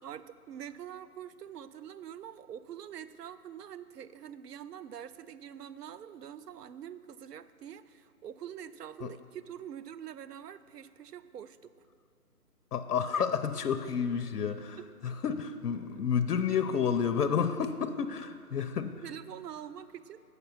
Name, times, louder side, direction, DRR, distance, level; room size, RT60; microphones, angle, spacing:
voice 1, 0.0-11.7 13.1-13.3 19.0-20.2, right 9 dB, 85° right, 14 dB, 0.6 m, -45 dB
voice 2, 12.7-19.0, left 7 dB, 80° left, 9 dB, 0.6 m, -30 dB
8.0 x 6.0 x 5.5 m, 2.2 s
hypercardioid pair, 170°, 46 cm